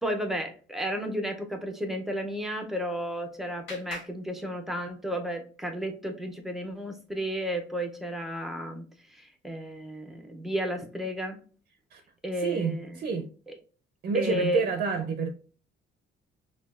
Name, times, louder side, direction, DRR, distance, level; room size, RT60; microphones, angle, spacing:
voice 1, 0.0-8.8 9.1-11.4 12.2-13.6 14.1-14.6, equal, ahead, 0.5 m, -33 dB
Clapping, 2.6-5.2, left 2 dB, 65° left, 1.6 m, -47 dB
voice 2, 12.4-13.3 14.0-15.3, right 5 dB, 50° right, 0.5 m, -28 dB
5.5 x 2.3 x 2.4 m
cardioid pair, 165°, 20 cm